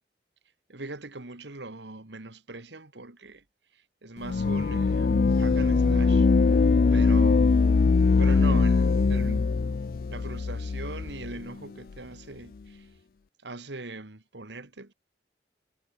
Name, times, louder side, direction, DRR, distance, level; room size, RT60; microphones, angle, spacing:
voice 1, 0.7-3.4 3.7-6.3 6.9-7.5 8.2-9.5 10.1-12.9 13.4-14.9, right 2 dB, 80° right, 2.0 m, -40 dB
sound 1, 4.2-11.4, left 4 dB, 50° left, 0.4 m, -22 dB
head